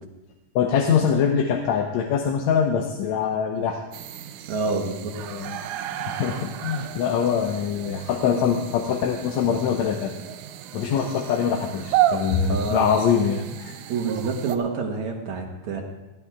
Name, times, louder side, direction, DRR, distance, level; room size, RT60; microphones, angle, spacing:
voice 1, 0.6-3.8 5.3-5.6 6.0-10.1 10.7-13.7, left 7 dB, 75° left, 3 dB, 2.1 m, -23 dB
sound 1, 3.9-14.6, right 12 dB, 85° right, 2.1 m, -32 dB
voice 2, 4.5-5.1 6.8-6.9 12.5-12.9 13.9-15.8, right 4 dB, 70° right, 1 dB, 2.7 m, -27 dB
18.5 x 11.0 x 3.6 m, 1.1 s
omnidirectional pair, 3.4 m